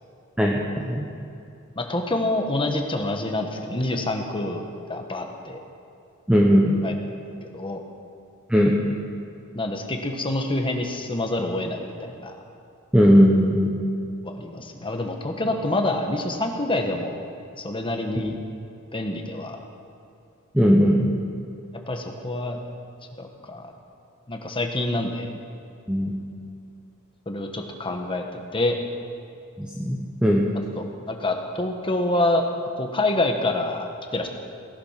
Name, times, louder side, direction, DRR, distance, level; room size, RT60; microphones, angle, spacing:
voice 1, 0.4-1.1 6.3-6.7 8.5-8.8 12.9-13.7 18.2-18.3 20.5-21.1 25.9-26.1 29.8-30.4, equal, 5° right, -2 dB, 1.1 m, -18 dB
voice 2, 1.7-5.6 6.8-6.9 7.4-7.8 9.5-12.4 14.2-17.2 17.6-18.3 18.9-19.6 21.9-22.6 23.2-23.7 24.3-25.3 27.3-28.8 30.8-32.4 32.7-34.3, left 2 dB, 25° left, 4 dB, 1.4 m, -27 dB
18.0 x 11.0 x 5.9 m, 2.6 s
head